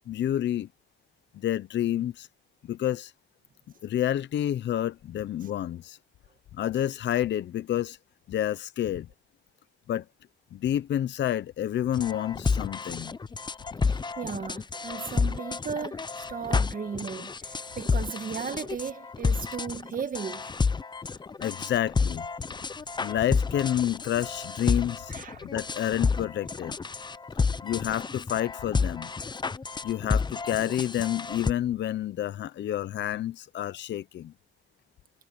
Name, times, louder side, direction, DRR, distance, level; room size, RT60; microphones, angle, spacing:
voice 1, 0.1-0.7 1.3-2.3 2.7-3.1 3.8-6.0 6.5-8.0 8.3-9.1 9.9-10.0 10.5-13.2 21.4-22.3 23.0-26.8 27.6-29.1 29.8-34.3, left 11 dB, 65° left, 0.8 m, -29 dB
sound 1, 12.0-31.5, left 4 dB, 20° left, 0.7 m, -30 dB
voice 2, 13.9-20.6 25.1-25.5, right 6 dB, 45° right, 1.9 m, -36 dB
cardioid pair, 90°, 20 cm